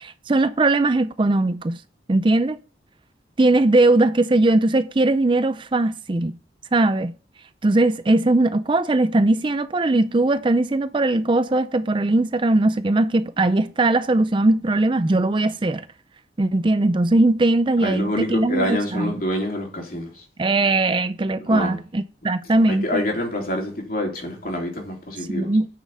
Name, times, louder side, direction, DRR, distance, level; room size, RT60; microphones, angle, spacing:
voice 1, 0.0-1.8 2.1-2.6 3.4-6.4 6.7-7.1 7.6-15.9 16.4-19.1 20.4-23.0 25.3-25.7, right 2 dB, 30° right, 0.4 m, -20 dB
voice 2, 17.8-20.2 21.4-21.7 22.6-25.5, left 1 dB, 50° left, 3.0 m, -26 dB
9.8 x 5.5 x 6.3 m
head